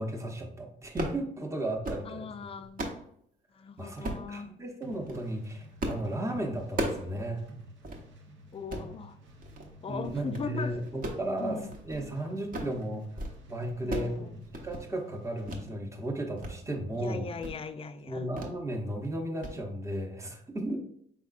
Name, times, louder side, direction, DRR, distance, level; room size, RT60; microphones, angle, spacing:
voice 1, 0.0-2.3 3.8-7.5 9.9-11.6 11.9-13.1 13.5-17.3 18.1-20.8, right 1 dB, 15° right, 0.8 m, -35 dB
sound 1, 0.8-1.2 1.6-2.1 2.5-3.0 4.0-4.3 4.9-5.2 5.8-6.1 6.4-7.1 7.4-7.5 7.8-8.0 8.5-8.9 9.4-9.7 10.0-10.5 10.9-12.1 12.4-12.8 13.0-13.4 13.6-14.2 14.4-14.8 15.5-15.6 16.0-16.5 16.9-17.0 17.4-17.6 18.4-18.6 18.9-19.1 19.4-19.6, right 1 dB, 45° right, 0.9 m, -36 dB
voice 2, 2.0-3.1 3.5-4.5 8.5-9.2 9.8-10.8 11.4-11.8 13.8-14.4 16.9-18.3, left 5 dB, 30° left, 0.4 m, -39 dB
sound 2, 4.8-15.6, right 1 dB, 70° right, 0.8 m, -52 dB
4.8 x 3.5 x 2.5 m
cardioid pair, 90°, 20 cm